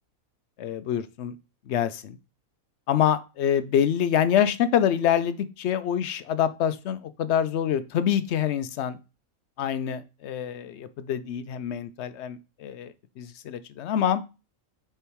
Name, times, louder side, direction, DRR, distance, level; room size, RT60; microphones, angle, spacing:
voice 1, 0.6-1.4 1.7-2.2 2.9-9.0 9.6-14.2, left 9 dB, 65° left, 0.8 m, -26 dB
6.7 x 3.6 x 4.5 m
omnidirectional pair, 1.5 m